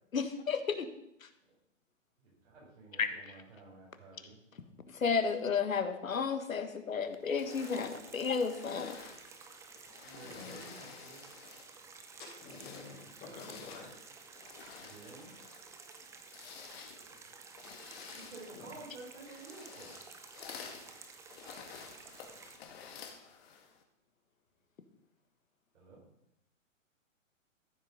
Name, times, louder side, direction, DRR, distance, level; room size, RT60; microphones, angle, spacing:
voice 1, 0.1-0.9 1.2-1.3 3.0-3.3 4.9-9.0, left 5 dB, 90° left, 9 dB, 1.6 m, -32 dB
voice 2, 2.2-4.4 10.0-11.2 14.8-15.3 18.1-20.0 25.7-26.0, right 2 dB, 70° right, -6 dB, 5.4 m, -51 dB
sound 1, 7.2-11.8 12.3-23.8, left 6 dB, 50° left, 2.0 m, -51 dB
sound 2, 7.5-22.6, right 5 dB, 5° right, 0.6 m, -53 dB
voice 3, 10.2-10.6 12.2-13.9 16.5-16.7 18.5-18.7 22.1-22.2 22.6-23.5, left 4 dB, 25° left, -3 dB, 4.8 m, -51 dB
14.0 x 7.9 x 5.3 m, 0.82 s
hypercardioid pair, 135°, 39 cm